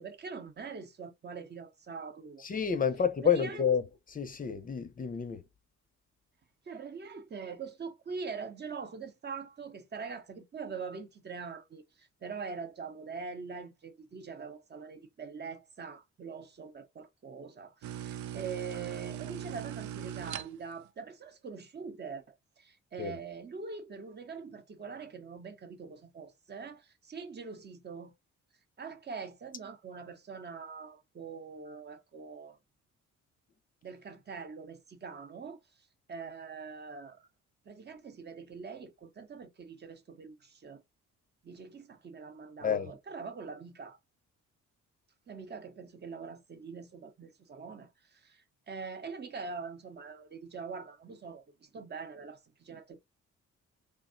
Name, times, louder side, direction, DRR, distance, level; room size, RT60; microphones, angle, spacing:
voice 1, 0.0-2.4 3.2-3.6 6.7-22.2 22.6-28.1 28.8-32.6 33.8-35.6 36.1-37.3 37.7-40.8 41.4-44.0 45.3-53.0, right 5 dB, 35° right, 0.7 m, -43 dB
voice 2, 2.4-5.4 23.0-23.2 42.6-42.9, left 7 dB, 30° left, 0.5 m, -29 dB
sound 1, 17.8-20.9, right 10 dB, 70° right, 0.4 m, -40 dB
3.4 x 2.0 x 2.5 m
cardioid pair, 90°, 30 cm